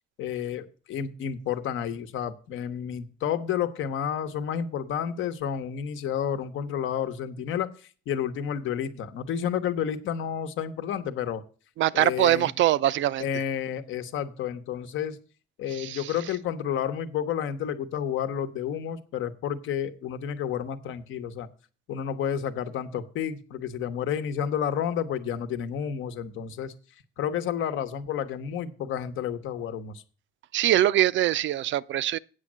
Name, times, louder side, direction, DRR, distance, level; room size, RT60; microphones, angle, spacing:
voice 1, 0.2-7.7 8.1-11.4 11.9-12.5 13.2-15.2 15.6-21.5 21.9-26.7 27.2-30.0, left 9 dB, 85° left, 1.0 m, -30 dB
voice 2, 11.8-13.2 15.7-16.1 30.5-32.2, right 13 dB, 70° right, 0.5 m, -23 dB
8.3 x 6.3 x 7.4 m
cardioid pair, 90°, 20 cm